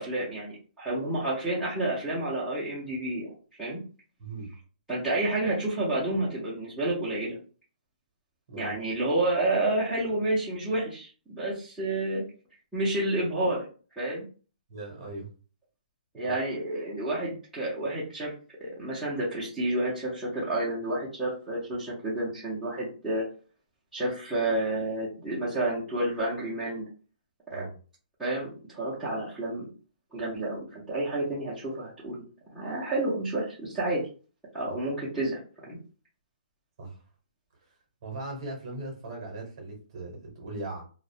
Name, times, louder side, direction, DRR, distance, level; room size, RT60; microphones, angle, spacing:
voice 1, 0.0-3.3 3.6-3.8 4.9-7.4 8.5-12.2 12.7-13.7 14.0-14.2 16.1-18.3 18.6-23.2 23.9-26.9 27.5-27.6 28.2-29.7 30.1-32.2 32.5-34.0 34.5-35.8, right 1 dB, ahead, -13 dB, 0.5 m, -30 dB
voice 2, 4.2-4.5 8.5-8.8 14.7-15.3 16.2-16.3 27.5-27.7 34.7-34.8 36.8-37.0 38.0-40.8, right 2 dB, 30° right, 1 dB, 0.7 m, -39 dB
2.3 x 2.0 x 2.6 m, 0.38 s
hypercardioid pair, 175°, 5 cm